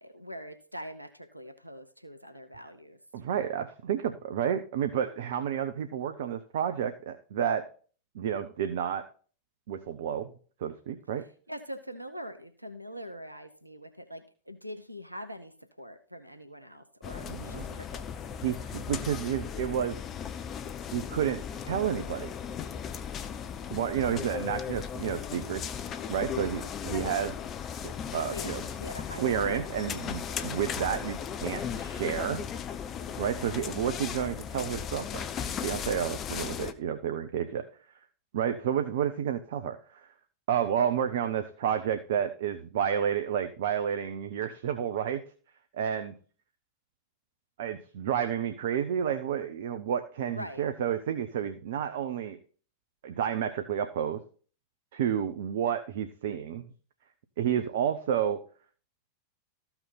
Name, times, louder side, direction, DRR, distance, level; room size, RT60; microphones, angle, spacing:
voice 1, 0.0-3.0 11.5-18.0 28.3-29.2 29.5-30.7 50.3-50.7, equal, 90° right, 9 dB, 0.8 m, -43 dB
voice 2, 3.1-7.6 8.1-9.0 9.7-10.3 10.6-11.3 17.2-17.8 18.4-20.0 20.9-22.3 23.7-25.6 26.1-27.3 27.8-28.6 29.2-32.4 33.2-35.2 35.6-37.6 38.3-40.0 40.5-45.2 45.7-46.1 47.6-52.4 53.0-54.2 54.9-56.7 57.4-58.4, right 9 dB, 55° right, 9 dB, 0.8 m, -30 dB
sound 1, 17.0-36.7, left 8 dB, 30° left, 0.7 m, -37 dB
14.0 x 6.0 x 4.1 m, 0.40 s
figure-of-eight pair, 90°, 0 cm